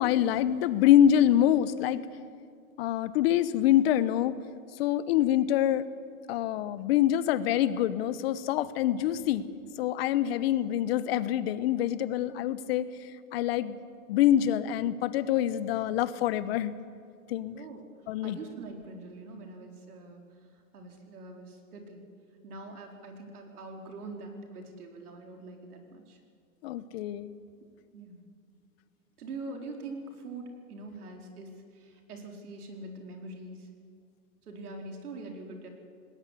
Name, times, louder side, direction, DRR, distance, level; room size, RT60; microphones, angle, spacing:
voice 1, 0.0-2.0 2.8-4.4 4.8-5.9 6.3-9.4 9.8-12.9 13.3-13.8 14.1-16.7 17.3-17.6 18.1-18.4 26.6-27.4, left 11 dB, 45° left, 15 dB, 1.0 m, -25 dB
voice 2, 17.5-17.9 18.2-20.2 20.7-22.0 22.4-26.2 27.9-28.2 29.2-33.7 34.5-35.7, right 2 dB, 85° right, 3 dB, 4.6 m, -43 dB
20.0 x 18.0 x 8.4 m, 2.3 s
hypercardioid pair, 145°, 44 cm